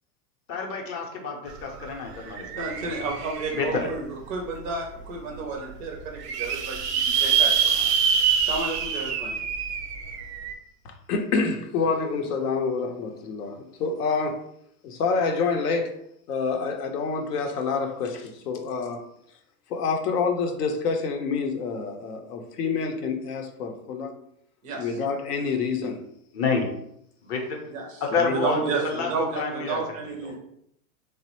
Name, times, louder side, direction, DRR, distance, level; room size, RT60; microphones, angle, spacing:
voice 1, 0.5-2.9 3.5-3.9 26.3-26.7 27.2-27.6 28.0-29.8 30.2-30.4, left 4 dB, 30° left, 1 dB, 0.6 m, -29 dB
sound 1, 1.5-1.6 1.9-4.0 4.6-4.7 5.0-5.1 5.3-5.4 5.9-10.5, right 7 dB, 90° right, 0.6 m, -25 dB
voice 2, 2.6-7.9 8.4-9.3 24.6-24.9 27.7-28.0 28.3-30.3, right 3 dB, 20° right, 0 dB, 0.3 m, -31 dB
voice 3, 10.8-14.4 14.8-16.0 16.3-19.0 19.7-24.1 24.8-26.0 28.1-28.3, left 5 dB, 85° left, 4 dB, 0.7 m, -27 dB
3.2 x 2.0 x 2.9 m, 0.73 s
hypercardioid pair, 125°, 46 cm